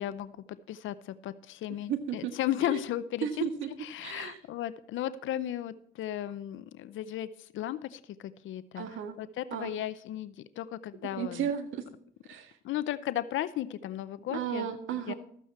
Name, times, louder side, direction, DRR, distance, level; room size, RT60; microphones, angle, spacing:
voice 1, 0.0-3.3 3.8-8.9 9.2-11.5 12.6-14.8 15.1-15.2, left 12 dB, 80° left, 15 dB, 0.6 m, -35 dB
voice 2, 1.9-2.3 2.6-2.8 3.2-3.7 4.0-4.4 8.8-9.2 9.5-9.7 11.0-11.8 12.2-12.6 14.3-15.1, right 9 dB, 85° right, 8 dB, 1.8 m, -34 dB
13.5 x 9.1 x 4.3 m, 0.64 s
cardioid pair, 90°, 20 cm